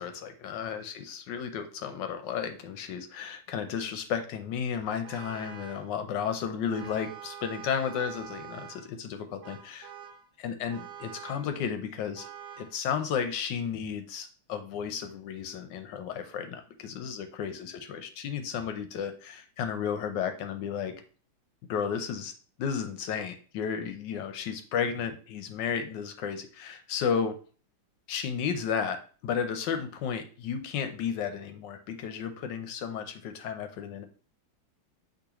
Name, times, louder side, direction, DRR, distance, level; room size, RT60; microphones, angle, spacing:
voice 1, 0.0-9.9 10.4-12.3 12.6-20.9 21.7-22.3 22.6-27.4 28.1-34.1, left 7 dB, 70° left, 8 dB, 1.2 m, -33 dB
Vehicle horn car horn honking, 5.0-5.9 6.7-8.9 9.4-10.3 10.7-11.5 12.2-12.8, right 9 dB, 70° right, 0.9 m, -45 dB
6.2 x 3.0 x 2.9 m, 0.40 s
omnidirectional pair, 2.2 m